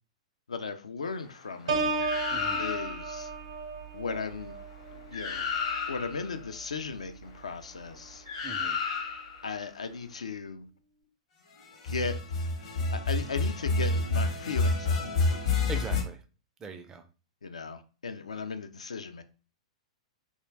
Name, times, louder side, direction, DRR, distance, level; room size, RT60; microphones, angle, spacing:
voice 1, 0.5-1.8 2.6-3.3 3.9-4.5 5.1-5.5 5.9-8.2 9.4-10.7 11.8-12.2 12.9-15.3 17.4-19.2, left 5 dB, 70° left, 0.3 m, -36 dB
Piano, 1.7-7.3 7.8-8.1, right 3 dB, 65° right, 0.8 m, -35 dB
sound 1, 2.0-3.1 4.8-4.9 5.1-6.3 8.2-9.4 11.7-16.0, left 3 dB, 55° left, 0.8 m, -29 dB
voice 2, 2.3-2.6 8.4-8.8 15.7-16.2 16.6-17.0, right 4 dB, 20° right, 0.3 m, -40 dB
2.4 x 2.2 x 3.2 m
figure-of-eight pair, 105°, 3 cm